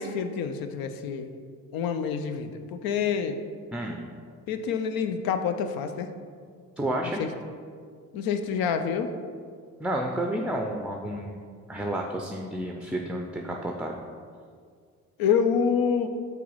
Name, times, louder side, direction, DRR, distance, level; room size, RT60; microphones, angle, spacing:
voice 1, 0.0-1.3 1.7-3.4 4.5-6.1 7.2-7.3 8.1-9.1 15.2-16.1, left 6 dB, 65° left, 8 dB, 0.6 m, -27 dB
voice 2, 3.7-4.0 6.8-7.2 9.8-13.9, right 1 dB, 5° right, 2 dB, 0.5 m, -31 dB
4.7 x 4.0 x 5.4 m, 2.1 s
hypercardioid pair, 50°, 38 cm